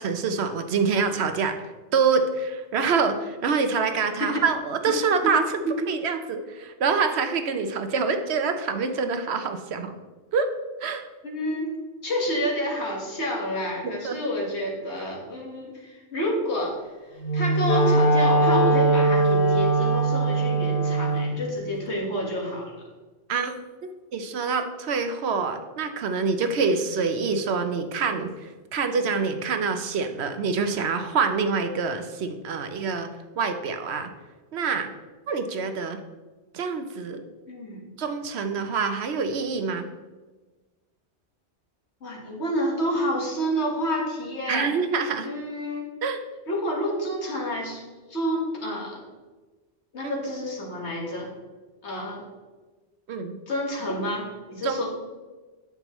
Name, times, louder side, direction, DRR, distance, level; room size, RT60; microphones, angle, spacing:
voice 1, 0.0-1.6 1.9-5.4 5.9-9.9 10.3-10.5 10.8-11.0 13.8-14.2 23.3-23.5 23.8-33.1 33.4-34.1 34.5-34.9 35.3-36.0 36.5-37.2 38.0-39.9 44.5-45.3 46.0-46.2 50.0-50.1 53.1-53.3 54.6-54.9, right 5 dB, 70° right, 8 dB, 0.9 m, -26 dB
voice 2, 11.2-11.7 12.0-16.8 17.1-22.8 37.5-37.9 42.0-44.7 45.2-45.9 46.5-47.8 48.1-49.0 49.9-51.3 51.8-52.3 53.5-54.9, equal, 70° left, -1 dB, 1.9 m, -29 dB
Wind instrument woodwind instrument, 17.2-21.3, right 2 dB, 35° left, 1.1 m, -21 dB
9.1 x 7.0 x 3.0 m, 1.3 s
omnidirectional pair, 1.2 m